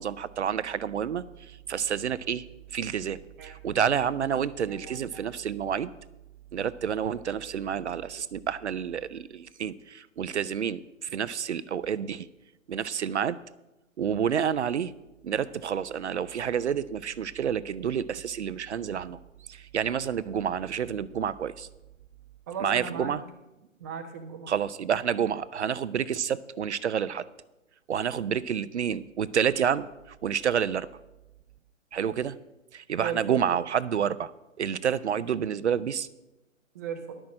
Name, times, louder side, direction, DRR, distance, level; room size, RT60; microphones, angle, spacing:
voice 1, 0.0-5.9 6.5-12.3 12.7-13.4 14.0-14.9 15.2-19.2 19.5-21.7 22.6-23.2 24.5-27.3 27.9-30.9 31.9-32.4 32.7-34.3 34.6-36.1, right 8 dB, 60° right, 16 dB, 0.6 m, -29 dB
voice 2, 4.7-5.3 22.5-23.1 23.8-24.5 33.0-33.4 36.7-37.2, right 6 dB, 15° right, 5 dB, 0.6 m, -37 dB
11.0 x 6.2 x 7.5 m, 0.98 s
figure-of-eight pair, 145°, 38 cm